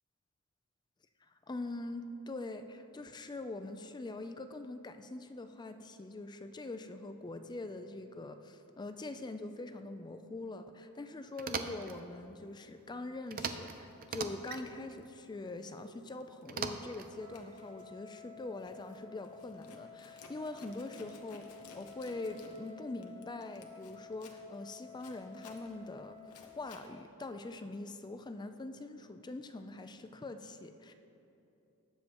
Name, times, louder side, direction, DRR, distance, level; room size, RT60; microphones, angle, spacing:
voice 1, 1.3-21.5 21.7-30.9, left 2 dB, 20° left, 8 dB, 0.4 m, -43 dB
sound 1, 11.4-12.0 13.3-13.7 14.0-14.6 16.5-17.1, right 6 dB, 40° right, 0.5 m, -39 dB
Zipper (clothing), 13.7-13.9 14.4-16.4 16.8-26.9, left 3 dB, 90° left, 1.0 m, -58 dB
Wind instrument woodwind instrument, 17.1-26.5, left 6 dB, 5° right, 2.2 m, -53 dB
19.0 x 7.5 x 3.0 m, 2.9 s
head